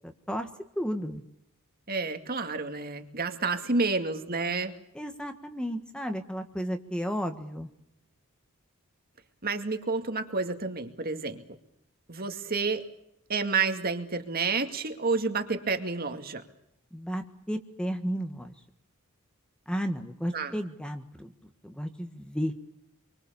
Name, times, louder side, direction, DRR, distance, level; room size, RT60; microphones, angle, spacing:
voice 1, 0.0-0.5 0.7-1.2 4.9-7.7 16.9-18.5 19.7-21.3 21.6-22.5, equal, 5° left, 6 dB, 1.5 m, -33 dB
voice 2, 1.9-4.7 9.4-11.4 12.1-12.8 13.3-16.4 20.3-20.5, right 4 dB, 45° right, 6 dB, 2.3 m, -29 dB
27.0 x 24.0 x 7.0 m, 0.77 s
head